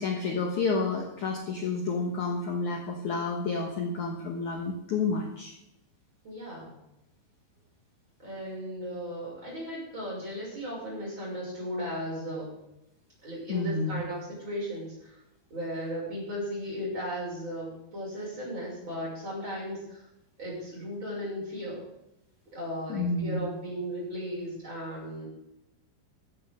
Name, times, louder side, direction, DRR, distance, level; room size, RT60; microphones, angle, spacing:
voice 1, 0.0-5.5 13.5-14.0 22.9-23.4, left 4 dB, 70° left, 1 dB, 1.8 m, -30 dB
voice 2, 6.2-6.7 8.2-12.5 13.2-15.2 15.5-20.1 20.4-21.9 22.5-25.3, equal, 25° right, -4 dB, 6.8 m, -36 dB
15.5 x 13.5 x 3.8 m, 0.87 s
omnidirectional pair, 5.9 m